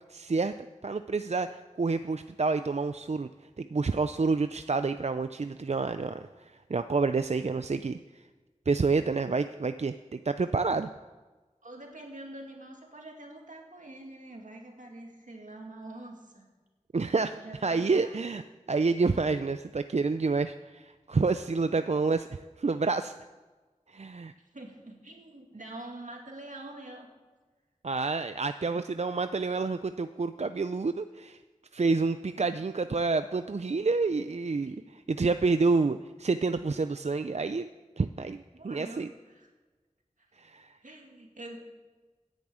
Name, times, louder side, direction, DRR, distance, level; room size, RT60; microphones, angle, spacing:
voice 1, 0.1-0.5 0.8-3.3 3.6-8.0 8.7-10.9 16.9-17.3 17.6-18.4 18.7-23.1 23.9-24.3 27.8-31.4 31.7-34.8 35.1-37.7 38.0-39.1 40.4-40.8, right 4 dB, 60° right, 10 dB, 0.4 m, -28 dB
voice 2, 11.6-16.5 17.3-18.2 24.5-27.1 34.6-35.0 38.5-39.5 40.2-40.3 40.8-41.6, right 1 dB, 85° right, 1 dB, 2.2 m, -45 dB
10.5 x 8.5 x 8.8 m, 1.3 s
wide cardioid pair, 45°, 13 cm